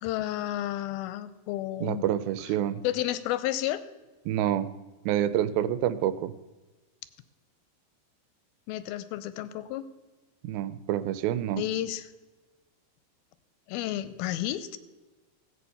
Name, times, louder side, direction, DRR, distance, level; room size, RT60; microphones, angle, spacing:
voice 1, 0.0-2.0 2.8-3.8 8.7-9.9 11.6-12.1 13.7-14.8, left 13 dB, 85° left, 14 dB, 2.5 m, -31 dB
voice 2, 1.8-2.8 4.3-4.7 5.1-6.3 10.4-11.6, right 11 dB, 80° right, 15 dB, 2.4 m, -27 dB
16.0 x 8.4 x 5.7 m, 1.2 s
omnidirectional pair, 4.4 m